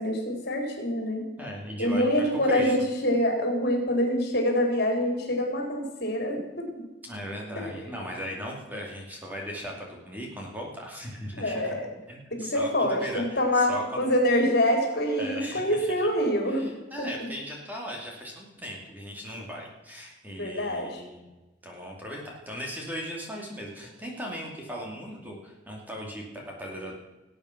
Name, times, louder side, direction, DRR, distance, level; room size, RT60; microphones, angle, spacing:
voice 1, 0.0-1.2 1.8-6.8 7.6-7.8 11.3-11.8 12.3-16.7 17.0-17.3 20.4-21.0, left 1 dB, 55° left, 2 dB, 4.1 m, -26 dB
voice 2, 1.4-2.1 2.5-2.8 7.0-11.7 12.1-14.0 15.2-16.1 16.6-21.3 21.6-26.9, equal, 10° right, -1 dB, 2.6 m, -38 dB
19.5 x 9.0 x 5.9 m, 1.1 s
head